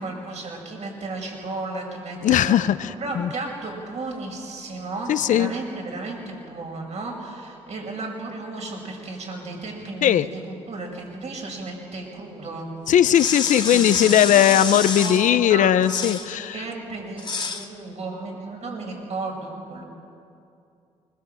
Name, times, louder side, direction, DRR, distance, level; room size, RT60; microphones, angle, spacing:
voice 1, 0.0-2.6 3.0-12.7 13.7-14.6 15.0-15.7 16.3-19.8, right 3 dB, 60° right, 1 dB, 5.5 m, -34 dB
voice 2, 2.2-3.3 5.1-5.5 10.0-10.3 12.9-16.6, left 10 dB, 80° left, 13 dB, 0.8 m, -18 dB
sound 1, 13.1-15.3 15.8-16.3 17.2-17.7, left 4 dB, 40° left, 2.1 m, -28 dB
24.5 x 22.0 x 7.7 m, 2.5 s
cardioid pair, 75°, 13 cm